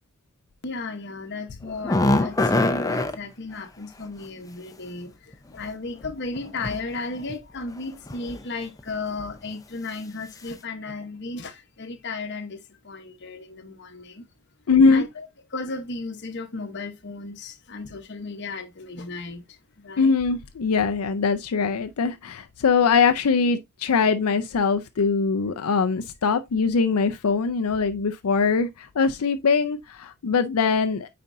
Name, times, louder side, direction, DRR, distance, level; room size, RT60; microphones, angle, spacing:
voice 1, 0.6-14.3 14.9-15.3 15.5-20.2, left 3 dB, 50° left, 1.0 m, -35 dB
sound 1, 1.7-3.1 5.3-5.4 6.4-6.8 7.1-7.3 8.1-8.4 8.8-8.9 9.3-9.4, left 2 dB, 15° left, 0.6 m, -23 dB
voice 2, 14.7-15.1 20.0-31.1, left 5 dB, 80° left, 0.5 m, -22 dB
9.0 x 4.3 x 2.6 m
head